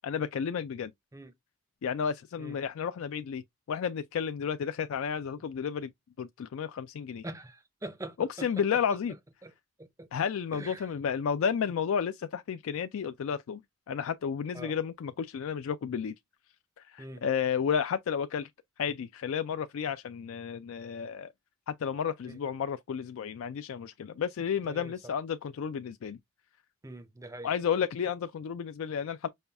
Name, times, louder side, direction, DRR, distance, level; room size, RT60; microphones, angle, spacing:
voice 1, 0.0-0.9 1.8-3.4 3.7-5.9 6.2-7.2 8.2-9.2 10.1-13.6 13.9-16.1 16.8-18.5 18.8-21.3 21.7-26.2 27.4-29.3, left 7 dB, 65° left, 0.3 m, -32 dB
voice 2, 7.2-8.1 10.0-10.1 10.5-10.8 14.6-14.7 17.0-17.2 22.3-22.4 24.7-24.9 26.8-27.5, right 1 dB, 15° right, 0.5 m, -43 dB
5.4 x 2.3 x 3.4 m
head